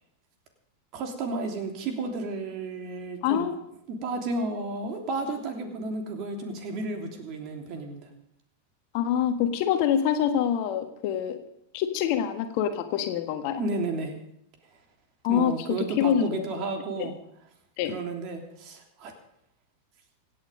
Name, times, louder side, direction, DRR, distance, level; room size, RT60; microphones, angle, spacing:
voice 1, 0.9-3.5 3.9-8.1 13.6-14.1 15.3-17.1 17.9-19.1, right 3 dB, 40° right, 3 dB, 3.3 m, -32 dB
voice 2, 3.2-3.5 8.9-11.4 11.7-13.6 15.2-15.5 16.0-16.4 17.0-17.1 17.8-17.9, left 9 dB, 45° left, 7 dB, 1.5 m, -25 dB
25.5 x 8.7 x 5.3 m, 0.77 s
figure-of-eight pair, 90°, 0 cm